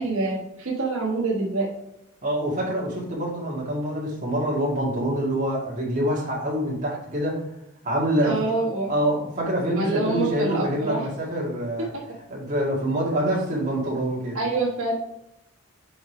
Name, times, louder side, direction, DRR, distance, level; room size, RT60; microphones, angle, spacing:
voice 1, 0.0-1.7 8.2-8.9 9.7-11.1 11.8-12.1 14.3-14.9, right 2 dB, 70° right, -4 dB, 1.4 m, -26 dB
voice 2, 2.2-7.5 7.8-8.4 8.9-11.9 12.3-14.4, right 1 dB, 35° right, -4 dB, 1.9 m, -25 dB
5.1 x 4.9 x 4.9 m, 0.84 s
head